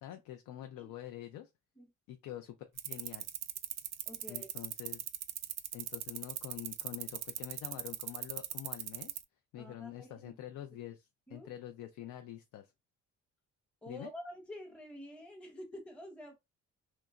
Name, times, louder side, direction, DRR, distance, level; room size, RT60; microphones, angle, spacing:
voice 1, 0.0-1.5 2.1-3.3 4.3-5.1 5.7-9.2 9.5-12.7 13.9-14.1, left 12 dB, 80° left, 0.5 m, -46 dB
sound 1, 2.8-9.2, right 12 dB, 60° right, 0.4 m, -39 dB
voice 2, 4.1-4.5 9.6-10.3 11.3-11.5 13.8-16.3, left 1 dB, 5° left, 0.7 m, -48 dB
2.9 x 2.2 x 2.3 m
cardioid pair, 90°, 30 cm